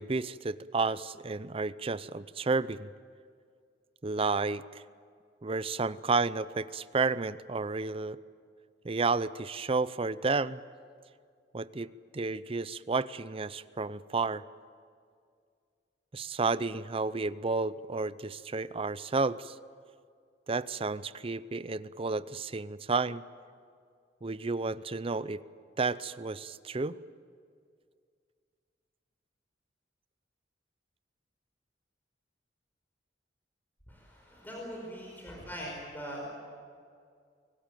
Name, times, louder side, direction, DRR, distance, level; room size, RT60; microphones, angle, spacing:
voice 1, 0.0-2.9 4.0-4.8 5.4-8.2 8.8-10.6 11.5-14.4 16.1-19.6 20.5-23.2 24.2-25.4 25.8-27.0, right 3 dB, 30° right, 16 dB, 0.6 m, -31 dB
voice 2, 33.9-36.3, equal, 10° left, -2 dB, 5.0 m, -41 dB
24.5 x 19.0 x 9.1 m, 2.2 s
head